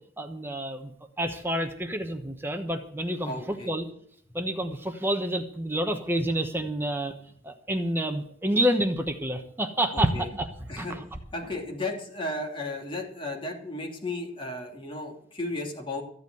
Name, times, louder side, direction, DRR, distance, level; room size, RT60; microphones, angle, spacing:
voice 1, 0.2-0.9 1.2-3.9 4.3-7.1 7.4-10.5 10.8-11.0, right 1 dB, 10° right, 6 dB, 1.1 m, -28 dB
voice 2, 3.2-3.7 9.9-10.3 10.7-11.0 11.3-16.0, left 2 dB, 30° left, 1 dB, 2.9 m, -34 dB
14.5 x 8.1 x 8.0 m, 0.63 s
head